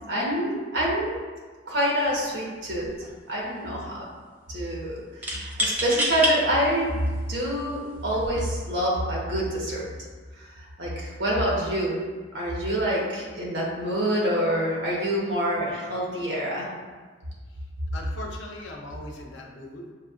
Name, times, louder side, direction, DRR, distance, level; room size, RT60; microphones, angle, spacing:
voice 1, 0.1-1.2 1.7-2.9 3.3-4.0 4.5-7.0 7.3-9.9 10.4-12.0 12.3-16.7, equal, 70° right, -4 dB, 1.2 m, -26 dB
sound 1, 2.1-2.3 2.6-3.3 5.2-6.4 7.1-7.2 8.1-8.4, equal, 10° right, 0.4 m, -27 dB
voice 2, 17.9-19.9, left 1 dB, 85° left, 0 dB, 0.7 m, -39 dB
6.5 x 2.6 x 2.5 m, 1.5 s
head